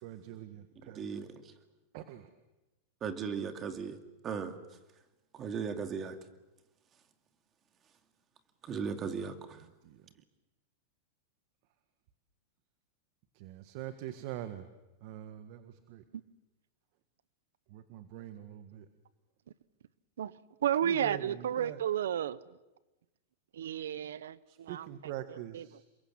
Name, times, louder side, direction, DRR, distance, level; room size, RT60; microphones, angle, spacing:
voice 1, 0.0-1.2 1.9-2.3 9.8-10.1 13.3-14.7 15.0-16.0 17.7-18.9 20.8-21.8 24.5-25.8, right 12 dB, 55° right, 1.7 m, -44 dB
voice 2, 1.0-1.5 3.0-4.0 4.2-4.6 5.3-6.2 8.6-9.7, right 6 dB, 30° right, 2.5 m, -37 dB
voice 3, 20.6-22.4 23.5-24.9 25.5-25.6, right 9 dB, 85° right, 1.0 m, -32 dB
28.5 x 23.0 x 7.5 m
supercardioid pair, 130°, 0 cm